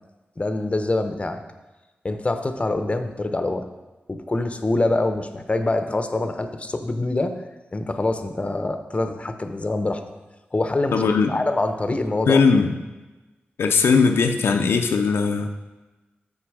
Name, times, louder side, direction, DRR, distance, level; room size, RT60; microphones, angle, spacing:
voice 1, 0.4-1.4 2.0-3.7 4.1-7.3 7.7-10.0 10.5-11.0 11.3-12.4, left 2 dB, 30° left, 8 dB, 0.7 m, -25 dB
voice 2, 10.9-11.3 12.3-12.7 13.6-15.5, left 5 dB, 85° left, 4 dB, 0.5 m, -19 dB
6.6 x 6.2 x 4.8 m, 1.1 s
cardioid pair, 55°, 4 cm